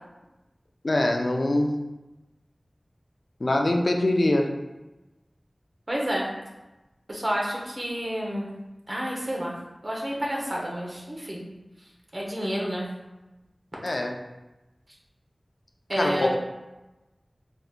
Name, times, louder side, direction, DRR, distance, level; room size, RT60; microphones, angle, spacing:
voice 1, 0.8-1.7 3.4-4.5 13.8-14.2 16.0-16.3, left 1 dB, 70° left, 2 dB, 0.4 m, -23 dB
voice 2, 5.9-6.3 7.1-8.5 8.9-9.5 9.8-11.4 12.1-12.9 15.9-16.3, equal, 45° right, -3 dB, 1.0 m, -29 dB
3.9 x 3.4 x 2.4 m, 1.0 s
wide cardioid pair, 45°, 0 cm